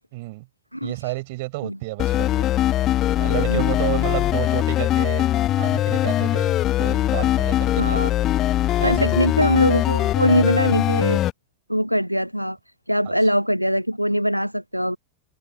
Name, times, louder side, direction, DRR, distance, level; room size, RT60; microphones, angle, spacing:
voice 1, 0.1-0.5 0.8-2.5 3.2-5.3 5.6-8.1 8.8-9.4, right 22 dB, 50° right, 5.9 m, -31 dB
voice 2, 0.7-1.1 1.6-1.8 3.5-3.7 7.8-8.1 8.8-11.2 11.7-12.6 12.9-15.0, equal, 90° right, 0.9 m, -22 dB
sound 1, 2.0-11.3, left 13 dB, 30° left, 0.5 m, -21 dB
figure-of-eight pair, 90°, 0 cm